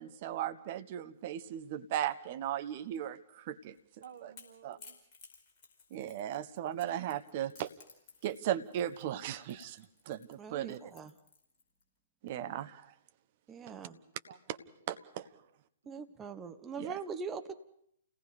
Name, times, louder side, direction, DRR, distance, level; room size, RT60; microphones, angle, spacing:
voice 1, 0.0-3.7 4.6-4.8 5.9-7.7 8.2-10.8 12.2-12.9 14.9-15.3 16.8-17.0, right 11 dB, 45° right, 11 dB, 1.1 m, -37 dB
Crackle / Crack, 3.6-11.8, left 4 dB, 35° left, 4.8 m, -58 dB
voice 2, 4.0-5.0 10.8-11.1 13.7-14.7, right 6 dB, 60° right, 3 dB, 2.8 m, -56 dB
voice 3, 10.4-11.1 13.5-14.0 15.9-17.5, right 5 dB, 15° right, 8 dB, 1.2 m, -42 dB
29.0 x 18.0 x 5.1 m, 0.68 s
figure-of-eight pair, 115°, 0 cm